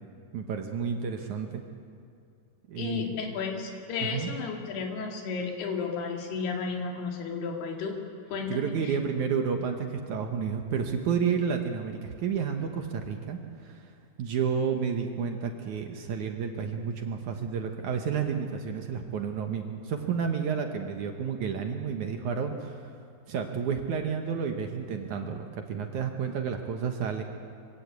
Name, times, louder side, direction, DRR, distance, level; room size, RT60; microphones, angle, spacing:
voice 1, 0.3-1.6 2.7-3.2 4.0-4.3 8.5-13.9 14.2-23.0 23.3-27.2, right 6 dB, 65° right, 4 dB, 2.2 m, -31 dB
voice 2, 2.8-8.0 8.3-9.0, left 5 dB, 90° left, 1 dB, 4.4 m, -33 dB
25.0 x 17.0 x 8.3 m, 2.4 s
omnidirectional pair, 4.5 m